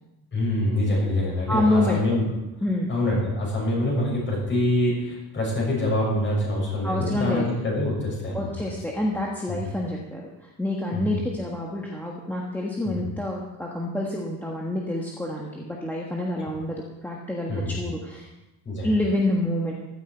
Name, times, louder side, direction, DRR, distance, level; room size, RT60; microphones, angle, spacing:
voice 1, 0.3-2.2 2.9-8.5 9.5-9.6 10.9-11.1 12.9-13.0 17.5-17.7 18.7-18.9, left 1 dB, 30° left, -3 dB, 6.8 m, -25 dB
voice 2, 1.5-2.0 2.6-2.9 6.8-7.4 8.3-18.3 18.8-19.7, left 1 dB, 5° left, -3 dB, 1.4 m, -27 dB
15.0 x 13.5 x 4.6 m, 0.97 s
cardioid pair, 170°, 39 cm